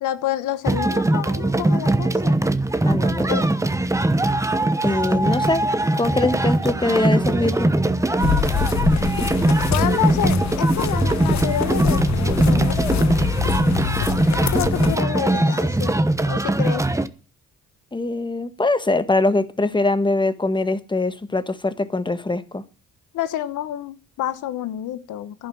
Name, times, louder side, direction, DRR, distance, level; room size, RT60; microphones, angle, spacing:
voice 1, 0.0-2.4 3.3-3.5 9.7-13.2 14.3-16.0 16.3-16.9 23.1-25.5, left 12 dB, 85° left, 1.3 m, -28 dB
sound 1, 0.7-17.1, right 2 dB, 10° right, 1.1 m, -21 dB
voice 2, 2.9-3.5 4.8-5.6 6.0-7.7 17.9-22.6, left 2 dB, 15° left, 1.4 m, -22 dB
sound 2, 8.2-15.0, left 9 dB, 65° left, 1.1 m, -26 dB
11.5 x 11.0 x 7.4 m
cardioid pair, 90°, 30 cm